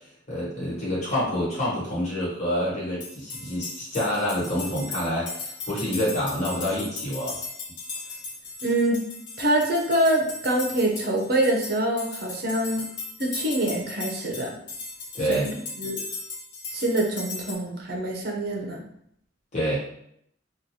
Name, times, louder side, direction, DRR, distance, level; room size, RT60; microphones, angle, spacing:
voice 1, 0.3-7.4 15.1-15.5 19.5-19.8, equal, 40° left, -8 dB, 1.2 m, -27 dB
sound 1, 3.0-17.5, left 3 dB, 85° left, 0.8 m, -37 dB
voice 2, 8.6-9.0 9.4-12.8 13.2-14.6 15.3-16.0 16.7-18.8, right 1 dB, 55° right, 1 dB, 0.6 m, -25 dB
3.0 x 2.3 x 2.7 m, 0.72 s
head